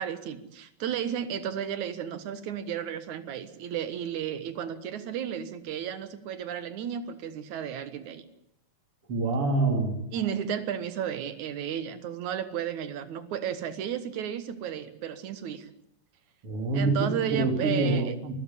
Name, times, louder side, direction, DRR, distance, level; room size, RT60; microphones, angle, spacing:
voice 1, 0.0-8.2 10.1-15.7 16.7-18.2, right 9 dB, 65° right, 12 dB, 2.5 m, -33 dB
voice 2, 9.1-10.0 16.4-18.3, right 2 dB, 40° right, 4 dB, 4.2 m, -26 dB
24.5 x 15.5 x 9.9 m, 0.78 s
omnidirectional pair, 4.0 m